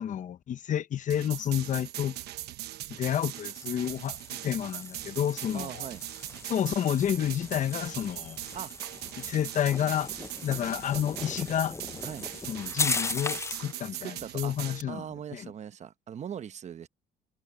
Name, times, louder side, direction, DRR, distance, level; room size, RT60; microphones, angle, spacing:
voice 1, 0.0-2.2 2.9-5.8 6.4-8.4 9.2-10.1 10.4-11.8 12.5-15.0 15.3-15.5, left 10 dB, 50° left, 0.9 m, -30 dB
sound 1, 1.1-14.8, right 14 dB, 75° right, 1.2 m, -40 dB
sound 2, 3.0-13.7, left 3 dB, 15° left, 0.7 m, -38 dB
voice 2, 5.5-6.0 8.5-8.7 12.0-12.3 14.0-14.5 14.9-16.9, right 9 dB, 45° right, 0.9 m, -40 dB
sound 3, 7.0-13.7, right 2 dB, 10° right, 3.7 m, -60 dB
cardioid pair, 110°, 17 cm